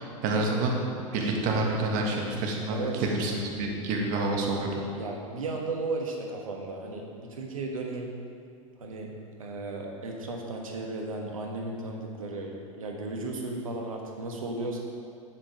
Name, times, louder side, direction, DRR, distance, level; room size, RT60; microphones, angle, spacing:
voice 1, 0.0-4.7, right 2 dB, 50° right, 0 dB, 1.7 m, -28 dB
voice 2, 2.7-3.0 4.9-8.1 8.8-14.8, right 2 dB, 80° right, 1 dB, 1.4 m, -35 dB
7.9 x 7.4 x 5.0 m, 2.4 s
hypercardioid pair, 85°, 17 cm